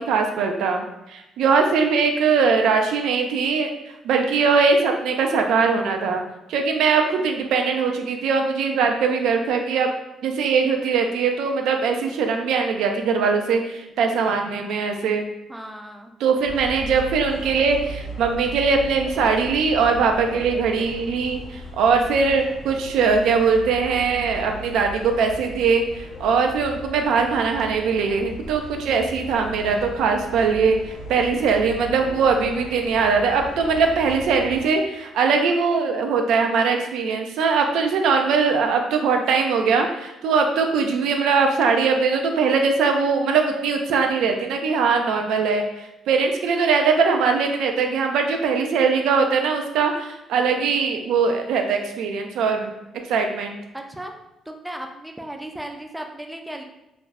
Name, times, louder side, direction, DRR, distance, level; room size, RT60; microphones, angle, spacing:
voice 1, 0.0-3.7 4.0-6.2 6.5-9.9 10.2-15.3 16.2-53.6, right 5 dB, 85° right, 4 dB, 0.3 m, -21 dB
voice 2, 15.5-16.1 53.7-54.1 54.5-56.6, right 1 dB, 10° right, 3 dB, 0.4 m, -35 dB
sound 1, 16.5-34.6, equal, 75° left, 0.6 m, -37 dB
2.4 x 2.1 x 3.3 m, 0.93 s
cardioid pair, 90°, 0 cm